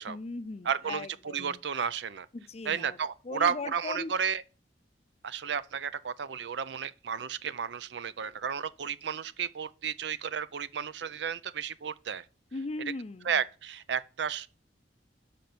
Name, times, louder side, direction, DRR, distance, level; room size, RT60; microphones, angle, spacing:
voice 1, 0.1-1.6 2.3-3.0 3.2-4.1 12.5-13.4, left 3 dB, 35° left, 0.5 m, -39 dB
voice 2, 0.7-1.1 1.3-2.3 2.7-4.4 5.2-12.2 13.2-14.5, right 7 dB, 70° right, 0.5 m, -32 dB
6.9 x 5.2 x 5.9 m
head